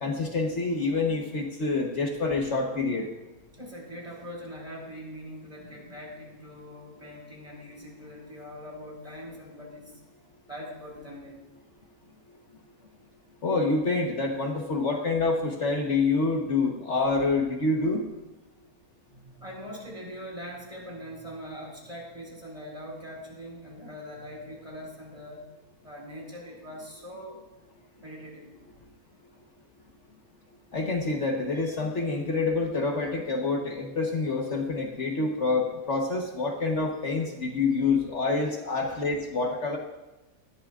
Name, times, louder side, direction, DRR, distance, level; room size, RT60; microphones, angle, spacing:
voice 1, 0.0-3.1 13.4-18.0 30.7-39.8, left 3 dB, 55° left, 1 dB, 1.5 m, -27 dB
voice 2, 3.5-10.0 10.5-11.4 19.1-25.5 25.8-27.4 28.0-28.5 38.8-39.1, equal, 25° right, -2 dB, 4.2 m, -42 dB
19.5 x 14.0 x 2.5 m, 1.0 s
omnidirectional pair, 1.5 m